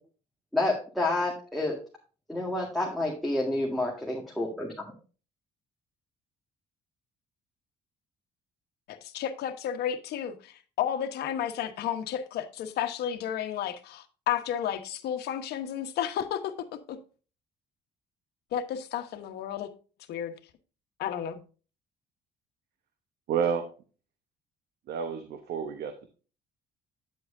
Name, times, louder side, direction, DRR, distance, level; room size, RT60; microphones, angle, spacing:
voice 1, 0.5-1.8 2.3-4.9, left 2 dB, ahead, 1.9 m, -29 dB
voice 2, 8.9-17.0 18.5-19.7 20.1-20.4 21.0-21.4, left 9 dB, 75° left, 1.2 m, -32 dB
voice 3, 23.3-23.7 24.9-26.1, right 7 dB, 70° right, 1.0 m, -30 dB
9.3 x 7.7 x 2.7 m
cardioid pair, 110°, 17 cm